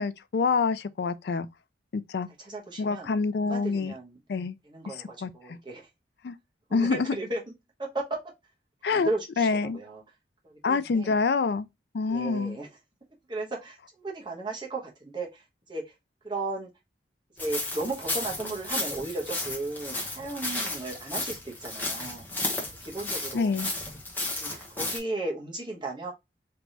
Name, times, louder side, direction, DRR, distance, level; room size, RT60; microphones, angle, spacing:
voice 1, 0.0-1.5 1.9-2.3 2.8-3.9 4.3-4.6 4.9-5.6 6.2-6.3 6.7-7.1 8.8-9.1 9.4-9.8 10.6-11.7 11.9-12.6 23.3-23.7, left 4 dB, 60° left, 0.4 m, -27 dB
voice 2, 2.4-3.1 3.4-4.2 4.6-5.9 6.7-7.4 7.8-8.2 8.9-10.0 10.4-11.2 12.1-12.7 13.3-15.4 15.7-15.8 16.2-16.7 17.4-22.2 22.8-23.7 24.3-26.1, right 2 dB, 25° right, 1.0 m, -35 dB
sound 1, 17.4-25.0, left 2 dB, 10° left, 0.9 m, -33 dB
3.4 x 2.9 x 2.6 m
head